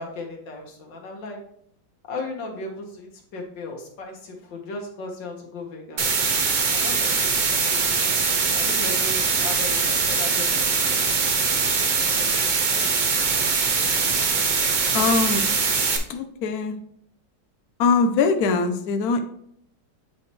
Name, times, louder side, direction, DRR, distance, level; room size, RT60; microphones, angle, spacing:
voice 1, 0.0-1.4 2.1-6.0 6.7-7.8 8.5-11.1 12.1-13.0, left 3 dB, 90° left, 1 dB, 2.0 m, -37 dB
sound 1, 6.0-16.0, right 5 dB, 80° right, 0.4 m, -22 dB
voice 2, 14.9-15.4 16.1-16.7 17.8-19.2, left 4 dB, 65° left, 6 dB, 1.1 m, -22 dB
8.5 x 4.3 x 3.1 m, 0.68 s
omnidirectional pair, 1.9 m